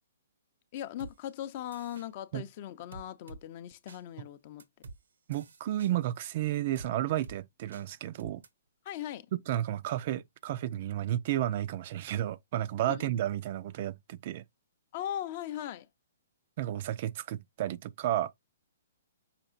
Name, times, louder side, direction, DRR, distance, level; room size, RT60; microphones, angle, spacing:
voice 1, 0.7-4.6 8.9-9.3 12.8-13.1 14.9-15.9, left 11 dB, 45° left, 0.5 m, -39 dB
sound 1, 1.0-1.1 1.7-2.1 2.9-3.4 3.9-4.0 4.6-5.0 5.3-5.9 6.7-6.9 7.2-7.4 7.7-7.8 8.2-8.5, right 3 dB, 80° right, 0.8 m, -48 dB
voice 2, 5.3-8.4 9.3-14.4 16.6-18.3, right 12 dB, 45° right, 0.3 m, -32 dB
5.8 x 3.6 x 2.5 m
hypercardioid pair, 140°, 0 cm